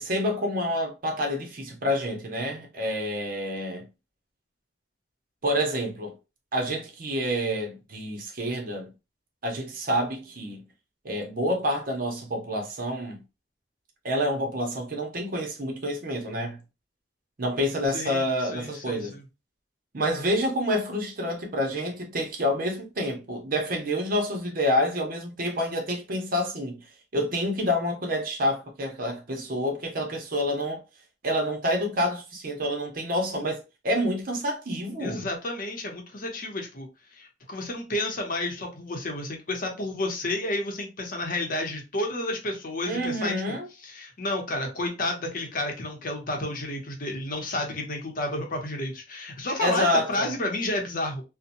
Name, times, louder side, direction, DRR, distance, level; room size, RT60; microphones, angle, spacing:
voice 1, 0.0-3.8 5.4-6.1 6.5-8.9 9.4-10.6 11.0-13.2 14.0-16.6 17.4-19.1 19.9-26.8 27.1-30.8 31.2-35.2 42.9-43.7 49.6-50.3, equal, 50° right, 0.8 m, -28 dB
voice 2, 17.9-19.2 35.0-36.9 37.1-43.6 43.8-51.2, left 2 dB, 50° left, 0.8 m, -31 dB
2.8 x 2.1 x 2.5 m
head